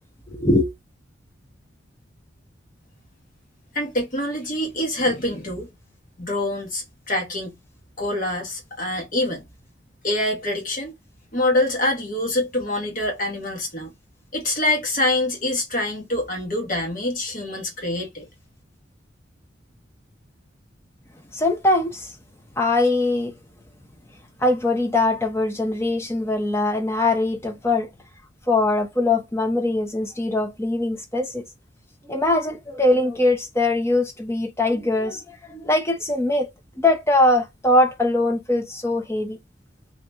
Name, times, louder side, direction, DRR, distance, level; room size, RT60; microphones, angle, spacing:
voice 1, 0.3-0.7 21.4-22.1 22.6-23.3 24.4-27.9 28.5-31.4 32.1-35.2 35.5-36.5 36.8-39.4, left 2 dB, 15° left, 0.7 m, -21 dB
voice 2, 3.7-5.7 6.2-7.6 8.0-9.4 10.0-11.0 11.3-13.9 14.3-18.2, left 1 dB, 45° left, 1.5 m, -25 dB
2.9 x 2.9 x 3.5 m
head